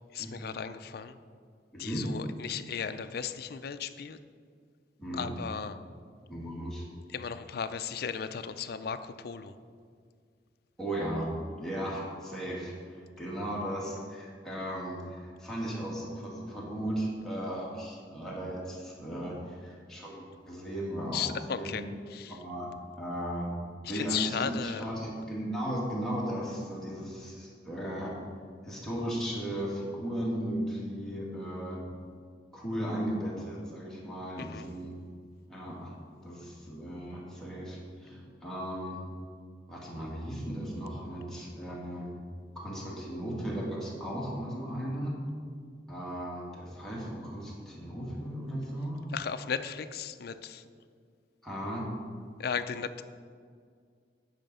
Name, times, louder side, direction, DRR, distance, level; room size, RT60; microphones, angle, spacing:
voice 1, 0.1-1.2 1.8-4.2 5.1-5.8 7.1-9.6 21.1-21.8 22.1-22.4 23.8-24.9 34.4-34.6 49.1-50.6 52.4-53.0, left 7 dB, 60° left, 11 dB, 0.4 m, -35 dB
voice 2, 1.7-2.0 5.0-5.3 6.3-6.8 10.8-11.3 11.6-21.8 22.3-22.7 23.0-23.5 23.9-28.1 28.6-31.8 32.5-34.9 35.5-35.9 36.2-39.0 39.7-42.1 42.6-45.2 45.9-49.0 51.4-51.9, right 1 dB, 5° left, -6 dB, 2.0 m, -36 dB
8.9 x 5.7 x 5.4 m, 2.1 s
head